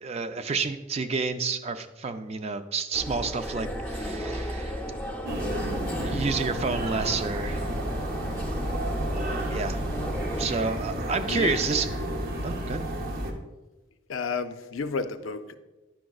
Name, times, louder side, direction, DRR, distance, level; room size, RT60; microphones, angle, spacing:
voice 1, 0.0-4.9 6.0-7.6 9.1-9.8 10.4-11.9 12.4-12.8, right 4 dB, 30° right, 9 dB, 0.4 m, -30 dB
sound 1, 2.9-10.5, equal, 10° left, 0.6 m, -34 dB
sound 2, 5.2-13.3, right 1 dB, 45° right, 0.8 m, -31 dB
voice 2, 11.2-11.6 14.1-15.6, left 5 dB, 75° left, 9 dB, 0.5 m, -31 dB
10.0 x 6.2 x 2.3 m, 1.1 s
head